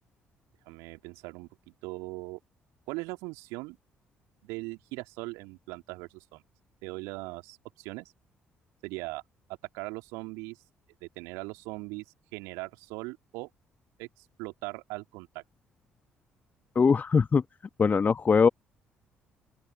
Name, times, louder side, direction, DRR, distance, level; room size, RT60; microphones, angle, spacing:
voice 1, 0.7-1.5 1.8-2.4 2.9-3.8 4.4-6.4 6.8-8.1 8.8-9.2 9.7-10.6 11.0-12.0 12.3-13.5 14.0-15.4, right 25 dB, 65° right, 2.5 m, -39 dB
voice 2, 16.7-17.4 17.8-18.5, left 5 dB, 35° left, 1.0 m, -21 dB
open air
figure-of-eight pair, 45°, 5 cm